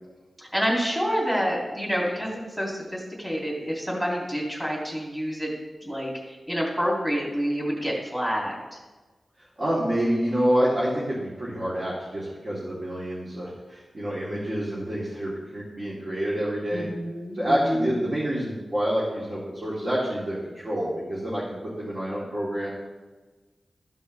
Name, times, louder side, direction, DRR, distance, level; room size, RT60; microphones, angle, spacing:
voice 1, 0.4-5.5 5.8-6.1 6.5-8.6 16.7-18.1, equal, 10° right, -3 dB, 2.6 m, -28 dB
voice 2, 9.6-16.9 17.3-22.7, equal, 40° right, -9 dB, 2.4 m, -27 dB
13.5 x 5.3 x 3.3 m, 1.3 s
wide cardioid pair, 95°, 0 cm